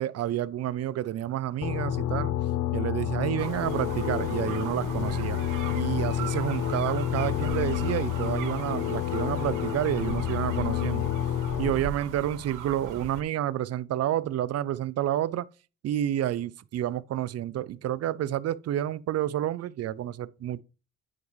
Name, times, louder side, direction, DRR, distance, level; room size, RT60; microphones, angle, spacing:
voice 1, 0.0-2.3 2.7-5.4 5.7-11.1 11.6-15.5 15.8-20.6, right 12 dB, 55° right, 0.5 m, -29 dB
sound 1, 1.6-11.7, left 12 dB, 65° left, 0.8 m, -29 dB
sound 2, 3.4-13.2, right 5 dB, 85° right, 1.5 m, -38 dB
9.4 x 4.8 x 3.1 m
cardioid pair, 90°, 30 cm